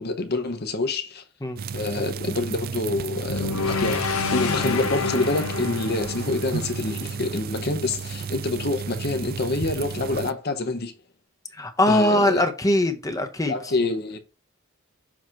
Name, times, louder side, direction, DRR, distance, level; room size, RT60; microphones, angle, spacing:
voice 1, 0.0-1.2 1.7-10.9 11.9-12.4 13.4-14.2, left 2 dB, 50° left, 0.9 m, -27 dB
sound 1, 1.6-10.3, right 6 dB, 45° right, 0.3 m, -33 dB
sound 2, 3.3-7.5, left 5 dB, 85° left, 0.8 m, -29 dB
voice 2, 11.5-13.6, left 1 dB, 15° left, 0.8 m, -22 dB
7.4 x 3.0 x 4.5 m
head